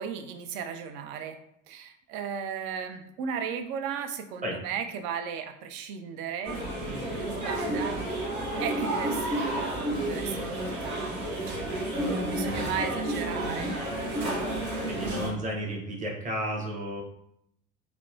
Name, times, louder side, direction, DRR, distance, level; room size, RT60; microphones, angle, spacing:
voice 1, 0.0-1.4 1.7-8.2 8.6-13.7, right 7 dB, 60° right, 7 dB, 0.5 m, -36 dB
sound 1, 6.4-15.3, right 1 dB, 85° right, 0.8 m, -31 dB
voice 2, 14.9-17.0, equal, 20° right, -2 dB, 0.7 m, -33 dB
2.9 x 2.1 x 2.4 m, 0.76 s
hypercardioid pair, 55°, 41 cm